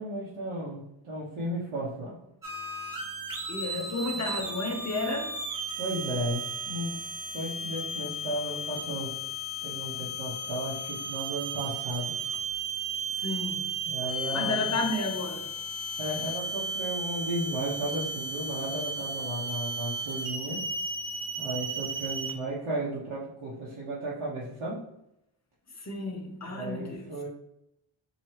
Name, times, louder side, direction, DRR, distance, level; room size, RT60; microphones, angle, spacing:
voice 1, 0.0-2.2 3.7-3.9 5.8-7.1 7.3-9.1 9.6-12.2 13.8-14.8 16.0-20.6 21.4-24.8 26.4-27.3, right 1 dB, 75° right, -6 dB, 1.1 m, -34 dB
sound 1, 2.4-22.3, right 1 dB, 40° right, 1.1 m, -35 dB
voice 2, 3.5-5.3 13.2-13.7 14.3-15.5 25.8-27.1, left 2 dB, 35° left, 1 dB, 1.1 m, -32 dB
4.3 x 3.0 x 3.1 m, 0.81 s
cardioid pair, 70°, 49 cm